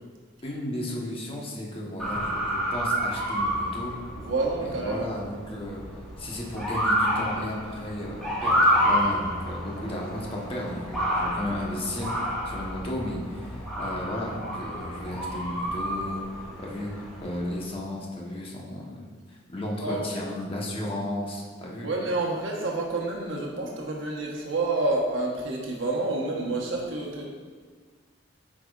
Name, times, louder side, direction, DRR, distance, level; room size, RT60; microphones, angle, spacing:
voice 1, 0.4-3.9 4.6-5.8 6.2-16.9 17.2-19.0 19.3-21.9, left 1 dB, 30° left, -3 dB, 1.1 m, -34 dB
Motor vehicle (road) / Siren, 2.0-17.6, equal, ahead, 1.6 m, -29 dB
voice 2, 4.1-5.1 19.8-20.3 21.8-27.2, right 2 dB, 75° right, -1 dB, 1.1 m, -28 dB
8.2 x 5.0 x 2.4 m, 1.5 s
head